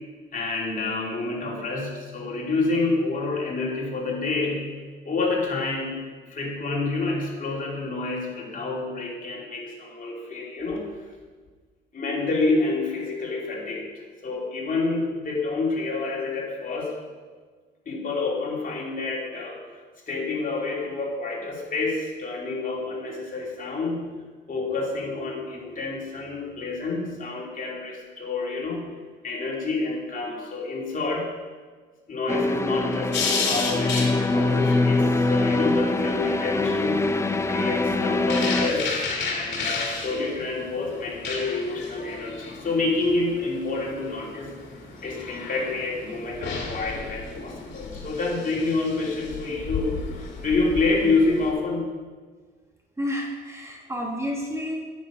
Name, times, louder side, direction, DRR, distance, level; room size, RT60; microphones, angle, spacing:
voice 1, 0.3-4.8 5.0-6.0 6.3-10.9 11.9-13.8 14.2-16.9 17.9-19.6 20.1-24.0 24.5-28.9 29.2-31.3 32.1-37.0 37.5-44.5 45.0-52.0, left 3 dB, 45° left, -3 dB, 2.9 m, -28 dB
sound 1, 32.3-38.7, left 2 dB, 15° left, 0.5 m, -23 dB
sound 2, 33.1-51.5, left 4 dB, 60° left, 2.4 m, -34 dB
voice 2, 53.0-54.8, equal, 15° right, 0 dB, 1.6 m, -30 dB
9.5 x 7.7 x 5.2 m, 1.5 s
cardioid pair, 90°, 20 cm